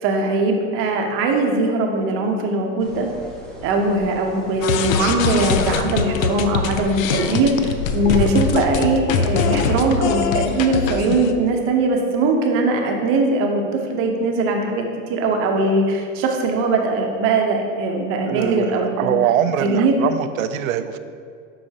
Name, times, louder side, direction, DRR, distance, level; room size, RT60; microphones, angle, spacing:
voice 1, 0.0-3.1 3.6-14.8 15.1-19.1 19.6-19.9, right 2 dB, 30° right, 2 dB, 0.8 m, -20 dB
sound 1, 2.8-8.5, left 2 dB, ahead, 0.4 m, -34 dB
sound 2, 4.6-11.3, left 6 dB, 85° left, 0.6 m, -22 dB
voice 2, 18.3-21.0, right 10 dB, 85° right, 11 dB, 0.5 m, -22 dB
7.8 x 5.6 x 2.8 m, 2.3 s
supercardioid pair, 145°, 40 cm